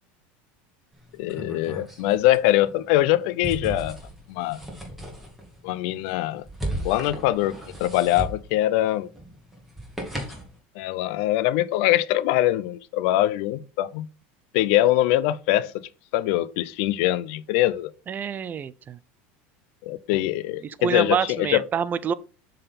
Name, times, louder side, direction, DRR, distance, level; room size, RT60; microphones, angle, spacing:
sound 1, 0.9-10.6, right 1 dB, ahead, 2.1 m, -37 dB
voice 1, 1.2-4.0 4.3-4.6 5.6-6.4 6.8-9.1 10.8-14.1 14.5-15.8 16.1-17.9 19.8-21.6, left 15 dB, 70° left, 0.4 m, -23 dB
voice 2, 18.1-19.0 20.6-22.1, right 7 dB, 30° right, 0.4 m, -27 dB
6.6 x 3.9 x 4.1 m
supercardioid pair, 120°, 6 cm